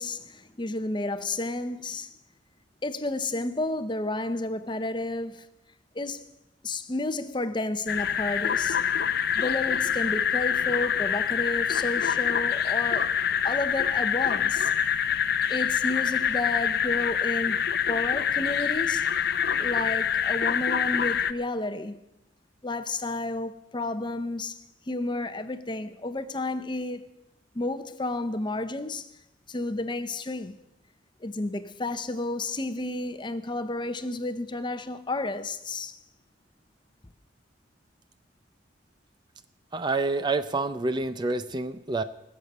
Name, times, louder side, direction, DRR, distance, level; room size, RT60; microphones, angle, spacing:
voice 1, 0.0-2.1 2.8-5.5 5.9-6.2 6.6-8.9 9.3-13.2 13.4-14.7 15.5-17.6 17.9-19.0 19.6-22.0 22.6-24.6 24.9-27.1 27.5-29.1 29.5-30.6 31.2-36.0, left 2 dB, 25° left, 0.7 m, -31 dB
sound 1, 7.9-21.3, left 8 dB, 60° left, 0.6 m, -26 dB
voice 2, 39.7-42.0, right 3 dB, 25° right, 0.5 m, -28 dB
19.5 x 6.8 x 7.9 m
head